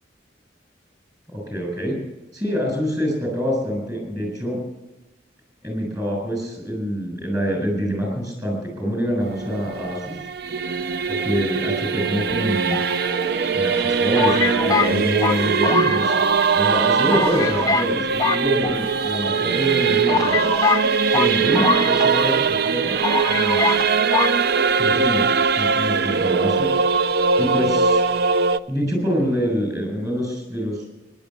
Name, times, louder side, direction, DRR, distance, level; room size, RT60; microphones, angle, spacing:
voice 1, 1.3-2.0 2.3-4.6 5.6-10.2 11.1-12.8 13.5-16.2 16.5-20.4 21.1-22.9 23.3-23.7 24.8-26.7 27.4-28.0 28.7-30.8, equal, 20° right, 1 dB, 7.1 m, -25 dB
Singing / Musical instrument, 9.2-28.6, right 5 dB, 60° right, 0.5 m, -21 dB
sound 1, 12.7-13.5 14.1-16.4 16.7-16.8 17.1-17.9 18.2-19.2 19.7-19.8 20.1-22.4 22.6-22.7 23.0-23.8 24.1-24.3, left 4 dB, 20° left, 0.5 m, -23 dB
17.0 x 11.0 x 7.2 m, 1.0 s
head